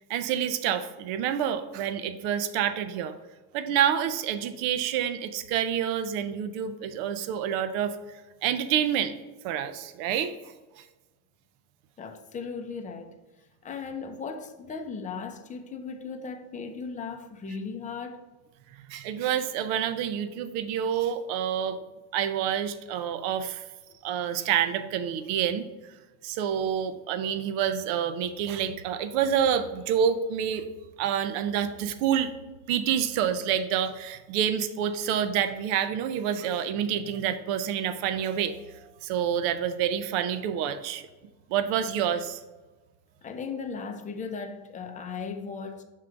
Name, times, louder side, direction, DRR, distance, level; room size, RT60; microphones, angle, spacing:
voice 1, 0.1-3.1 3.5-8.0 8.4-9.1 9.4-10.3 18.9-21.8 22.1-23.6 24.0-25.7 26.2-30.7 31.0-32.3 32.7-38.5 39.0-41.0 41.5-42.4, right 9 dB, 80° right, 0.7 m, -28 dB
voice 2, 12.0-13.2 13.6-18.2 43.2-45.8, left 5 dB, 15° left, 0.4 m, -37 dB
6.4 x 3.7 x 4.5 m
cardioid pair, 140°, 47 cm